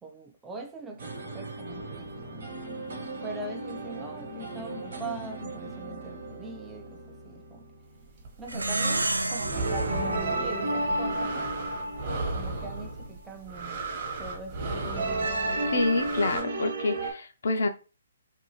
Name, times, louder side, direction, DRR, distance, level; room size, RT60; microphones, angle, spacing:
voice 1, 0.0-2.5 3.2-7.7 8.4-11.5 12.3-13.8 14.2-15.3, right 3 dB, 10° right, 0.4 m, -42 dB
sound 1, 1.0-8.0 9.4-13.0 14.7-17.1, right 2 dB, 70° right, 0.9 m, -33 dB
sound 2, 8.1-16.4, right 3 dB, 40° right, 0.9 m, -36 dB
Plucked string instrument, 8.5-11.3, right 2 dB, 90° right, 0.3 m, -31 dB
voice 2, 15.7-17.7, left 3 dB, 65° left, 0.4 m, -27 dB
2.6 x 2.2 x 2.9 m
figure-of-eight pair, 140°, 0 cm